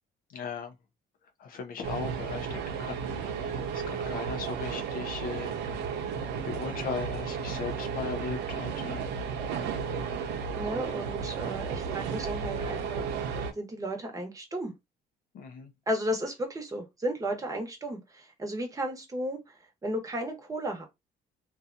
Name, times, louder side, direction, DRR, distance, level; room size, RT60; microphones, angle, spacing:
voice 1, 0.3-0.7 1.4-5.8 6.4-9.0 15.3-15.7, left 5 dB, 60° left, 0.6 m, -38 dB
sound 1, 1.8-13.5, right 6 dB, 80° right, 0.6 m, -33 dB
voice 2, 10.6-13.1 13.4-14.7 15.9-19.4 19.8-20.8, equal, 20° right, 0.9 m, -34 dB
2.7 x 2.3 x 2.5 m
cardioid pair, 110°, 17 cm